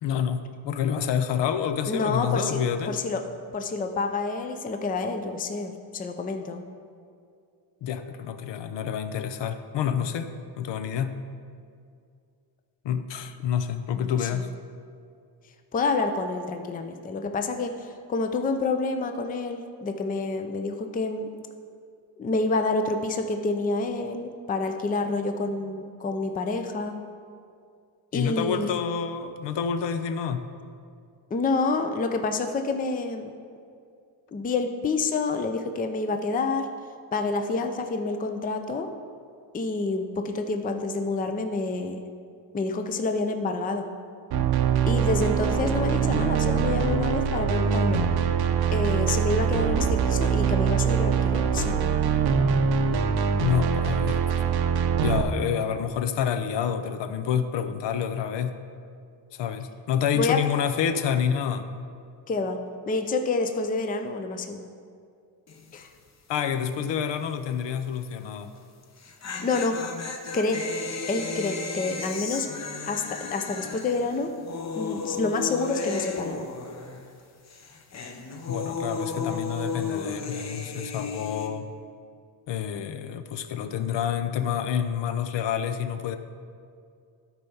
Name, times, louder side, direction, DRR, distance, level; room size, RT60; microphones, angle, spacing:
voice 1, 0.0-3.0 7.8-10.3 10.6-11.1 12.8-14.5 28.1-30.4 53.4-54.2 55.0-58.5 59.3-61.7 66.3-68.5 78.5-81.7 82.5-86.2, left 8 dB, 65° left, 10 dB, 0.7 m, -28 dB
voice 2, 1.9-2.6 2.9-3.2 3.5-6.6 13.9-14.4 15.7-21.3 22.2-26.9 28.1-28.7 31.3-33.3 34.3-36.7 37.1-38.9 39.5-42.0 42.5-43.8 44.9-48.0 48.7-52.0 60.1-60.4 62.3-62.6 62.9-64.7 65.7-65.9 69.4-69.8 70.3-70.6 71.1-72.5 72.9-74.3 74.8-76.4, left 3 dB, 20° left, 6 dB, 0.5 m, -28 dB
sound 1, 44.3-55.2, right 6 dB, 55° right, 0.7 m, -23 dB
sound 2, 65.5-65.8 66.1-66.2 68.8-77.2 77.5-81.5, left 4 dB, 35° left, 0.8 m, -34 dB
12.0 x 4.6 x 5.5 m, 2.3 s
cardioid pair, 125°, 47 cm